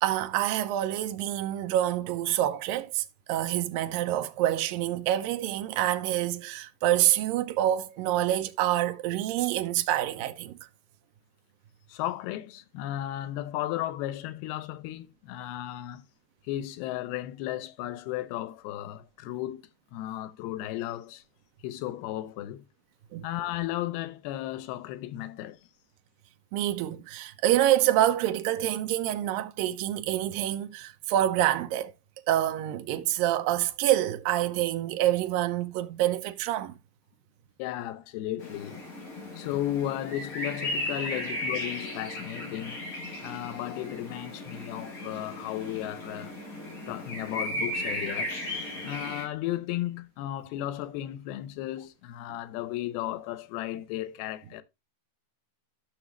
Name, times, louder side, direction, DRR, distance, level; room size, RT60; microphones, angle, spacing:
voice 1, 0.0-10.6 23.1-23.3 26.5-31.9 32.3-36.7, right 13 dB, 80° right, 2.4 m, -27 dB
voice 2, 11.9-16.1 16.4-21.2 21.6-22.6 23.2-25.6 37.6-38.8 39.3-42.9 43.2-46.4 46.9-48.4 48.8-54.6, left 13 dB, 90° left, 2.7 m, -34 dB
sound 1, 38.4-49.2, left 1 dB, 35° left, 3.9 m, -36 dB
13.5 x 6.1 x 3.0 m
omnidirectional pair, 4.4 m